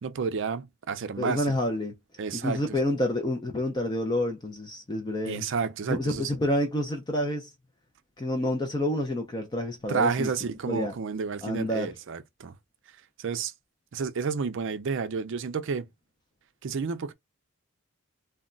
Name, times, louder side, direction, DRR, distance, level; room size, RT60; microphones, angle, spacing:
voice 1, 0.0-1.6 2.2-2.6 5.3-6.3 9.9-12.5 13.2-13.5 13.9-15.9 16.6-17.1, right 5 dB, 60° right, 0.4 m, -30 dB
voice 2, 1.2-1.9 2.3-5.4 5.9-7.5 8.2-10.3 10.7-10.9 11.4-11.9, left 1 dB, 20° left, 0.4 m, -28 dB
2.2 x 2.1 x 3.7 m
head